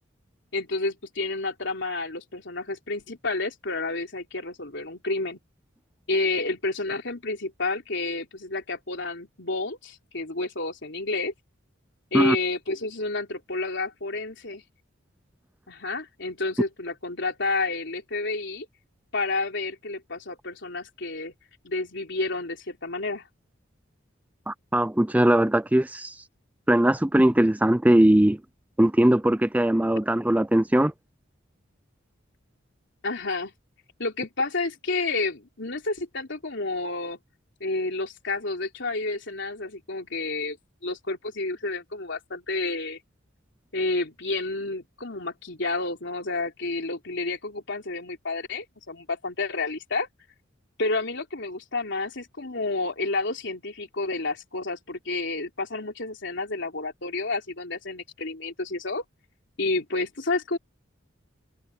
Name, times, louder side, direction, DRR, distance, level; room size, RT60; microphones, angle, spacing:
voice 1, 0.5-5.4 6.1-11.3 12.1-14.6 15.7-18.7 19.1-21.3 21.6-23.3 33.0-33.5 34.0-37.2 37.6-40.6 40.8-43.0 43.7-50.1 50.8-59.0 59.6-60.6, left 3 dB, 65° left, 4.0 m, -30 dB
voice 2, 24.5-26.1 26.7-28.4 28.8-30.9, right 1 dB, 10° right, 0.5 m, -20 dB
head